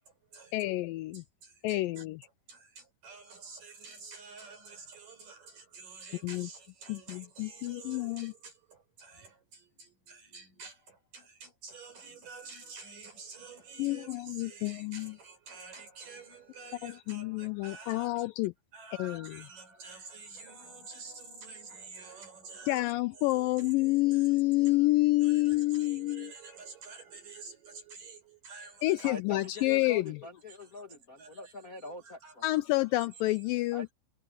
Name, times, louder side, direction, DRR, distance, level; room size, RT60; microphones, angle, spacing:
voice 1, 0.0-0.8 1.1-18.3 18.7-29.1 31.2-31.5 32.0-32.6, right 4 dB, 60° right, 7.9 m, -49 dB
voice 2, 0.5-1.2 1.6-2.2 6.2-6.5 6.9-8.3 13.8-15.2 16.8-18.5 19.0-19.4 22.7-26.3 28.8-30.2 32.4-33.9, left 19 dB, 80° left, 2.1 m, -29 dB
voice 3, 29.0-32.5 33.7-33.9, left 3 dB, 35° left, 1.6 m, -44 dB
omnidirectional pair, 4.3 m